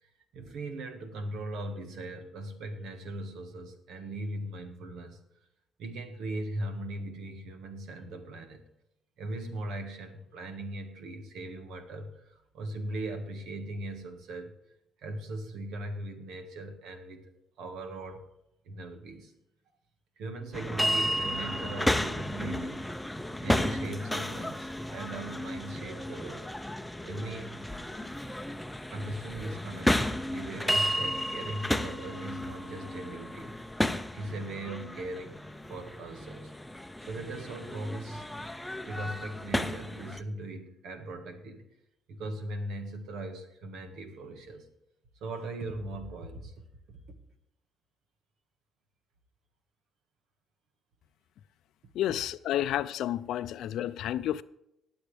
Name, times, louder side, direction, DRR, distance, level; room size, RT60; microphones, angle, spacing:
voice 1, 0.0-5.2 5.8-8.7 9.2-14.5 15.0-17.2 17.6-18.2 18.6-19.3 20.2-22.9 23.4-26.5 27.0-27.6 28.9-33.7 34.1-35.4 35.7-36.5 37.0-38.3 38.8-41.7 42.1-44.7 45.2-46.5 46.9-47.0, right 1 dB, 85° right, 1.6 m, -39 dB
sound 1, 20.5-40.2, left 1 dB, 5° left, 0.6 m, -33 dB
voice 2, 51.9-54.4, left 12 dB, 80° left, 0.4 m, -30 dB
19.5 x 7.1 x 3.4 m
cardioid pair, 90°, 0 cm